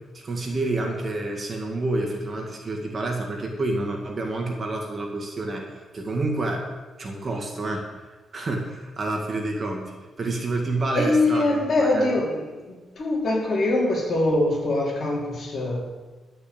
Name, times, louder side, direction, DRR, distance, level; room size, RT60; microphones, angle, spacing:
voice 1, 0.1-6.6 7.0-7.9 8.3-12.1, right 2 dB, 35° right, 1 dB, 2.1 m, -28 dB
voice 2, 10.9-15.9, left 2 dB, 45° left, -4 dB, 4.4 m, -23 dB
11.5 x 6.8 x 8.8 m, 1.2 s
cardioid pair, 140°, 0 cm